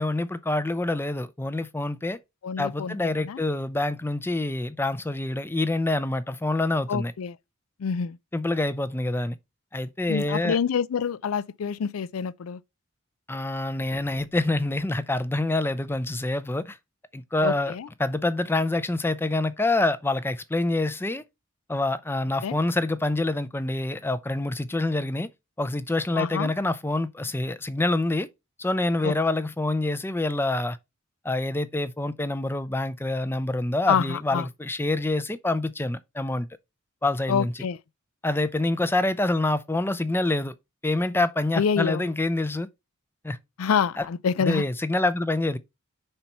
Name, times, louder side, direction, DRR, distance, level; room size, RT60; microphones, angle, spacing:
voice 1, 0.0-2.2 2.6-7.1 8.3-9.4 9.7-10.6 13.3-16.8 17.1-17.7 18.0-21.2 21.7-25.3 25.6-28.3 28.6-30.8 31.2-36.5 37.0-37.5 38.2-40.5 40.8-42.7 43.2-43.4 44.0-44.1 44.4-45.6, left 2 dB, 10° left, 0.5 m, -26 dB
voice 2, 2.4-3.4 6.9-7.4 7.8-8.2 10.1-12.6 17.4-17.9 22.4-22.6 26.1-26.5 29.0-29.1 33.9-34.5 37.3-37.8 41.6-42.1 43.6-44.6, left 6 dB, 90° left, 0.4 m, -27 dB
5.6 x 4.4 x 5.3 m
head